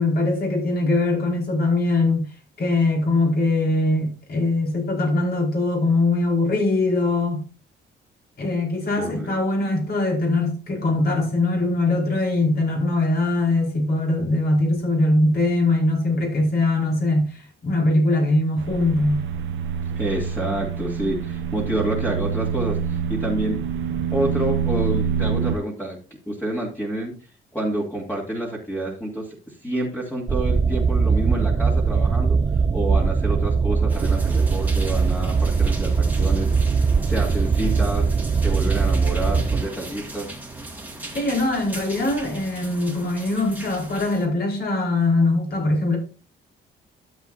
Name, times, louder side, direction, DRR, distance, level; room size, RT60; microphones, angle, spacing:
voice 1, 0.0-2.3 2.6-7.4 8.4-19.2 41.1-46.0, left 2 dB, 50° left, 5.0 m, -21 dB
voice 2, 9.0-9.4 20.0-23.6 24.1-26.0 26.3-27.1 27.5-32.4 32.7-40.3, right 1 dB, 10° left, 2.6 m, -28 dB
sound 1, 18.6-25.6, right 7 dB, 75° right, 0.9 m, -26 dB
sound 2, 30.3-39.6, right 5 dB, 25° right, 0.4 m, -21 dB
sound 3, 33.9-44.3, right 2 dB, 10° right, 2.1 m, -38 dB
12.5 x 7.7 x 2.7 m
cardioid pair, 90°, 20 cm